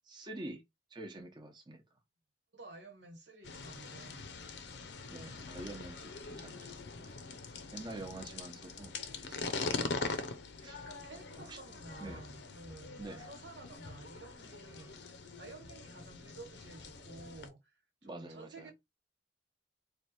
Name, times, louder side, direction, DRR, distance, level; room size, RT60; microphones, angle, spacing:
voice 1, 0.1-0.6 0.9-1.8 5.1-7.1 7.7-8.9 9.2-9.6 10.6-10.8 11.4-11.6 12.0-12.3 13.0-13.3 18.0-18.7, right 2 dB, 25° right, 0.8 m, -47 dB
voice 2, 2.5-4.4 10.7-17.6 18.0-18.7, right 2 dB, 80° right, 1.4 m, -52 dB
sound 1, 3.4-17.5, left 4 dB, 70° left, 0.7 m, -43 dB
3.3 x 2.4 x 4.2 m
head